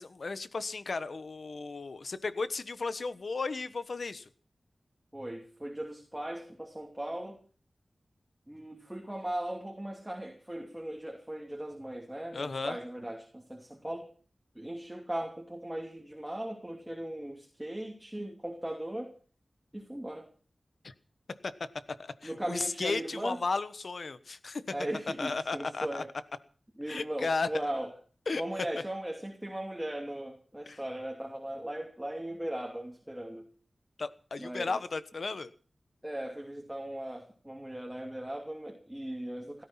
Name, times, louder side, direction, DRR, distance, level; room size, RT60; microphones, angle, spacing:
voice 1, 0.0-4.3 12.3-12.8 20.8-20.9 21.4-21.5 22.0-24.6 25.2-26.0 26.9-27.5 28.3-28.4 30.7-30.8 34.0-35.5, left 3 dB, 70° left, 13 dB, 1.2 m, -34 dB
voice 2, 5.1-7.4 8.5-14.1 14.5-19.1 19.7-20.3 22.2-23.4 24.7-26.1 26.8-27.9 28.3-33.4 34.4-34.7 36.0-39.6, right 1 dB, 10° right, 2 dB, 2.8 m, -38 dB
17.0 x 13.5 x 5.9 m, 0.42 s
wide cardioid pair, 80°, 0 cm